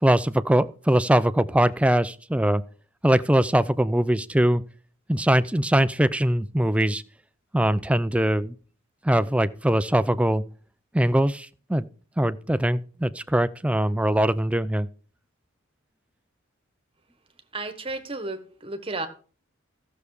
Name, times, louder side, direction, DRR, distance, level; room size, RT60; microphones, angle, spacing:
voice 1, 0.0-2.6 3.0-4.6 5.1-7.0 7.5-8.6 9.0-10.4 10.9-11.9 12.2-14.9, right 1 dB, 5° right, 0.4 m, -22 dB
voice 2, 17.5-19.1, right 2 dB, 25° right, 1.4 m, -33 dB
14.0 x 6.8 x 4.9 m
head